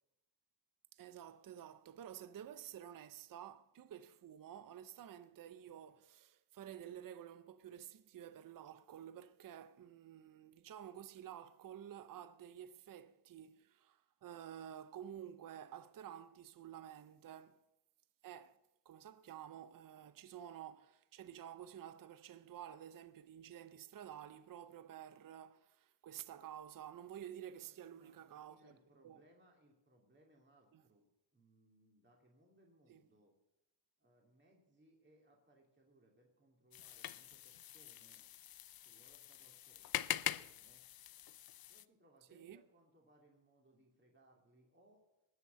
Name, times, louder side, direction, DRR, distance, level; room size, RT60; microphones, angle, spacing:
voice 1, 0.9-17.6 18.2-18.6 18.9-28.7 29.0-29.2 30.7-30.8 32.9-33.0 42.3-42.6, right 10 dB, 45° right, 0.6 m, -51 dB
voice 2, 27.6-31.1 31.3-33.3 34.0-38.3 38.8-40.8 41.7-45.1, right 1 dB, 20° right, 2.7 m, -69 dB
sound 1, 36.7-41.8, left 12 dB, 50° left, 0.5 m, -44 dB
19.0 x 6.4 x 6.8 m
cardioid pair, 100°, 49 cm